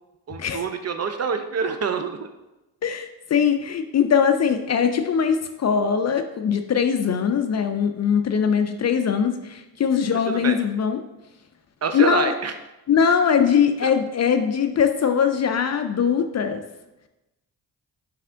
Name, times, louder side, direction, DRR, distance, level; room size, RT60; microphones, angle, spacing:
voice 1, 0.3-2.3 10.1-10.6 11.8-12.5 13.8-13.9, right 5 dB, 35° right, 8 dB, 0.4 m, -26 dB
voice 2, 2.8-11.0 11.9-12.3 12.9-16.6, left 7 dB, 40° left, 8 dB, 0.4 m, -21 dB
3.4 x 3.3 x 3.7 m, 0.99 s
supercardioid pair, 45°, 44 cm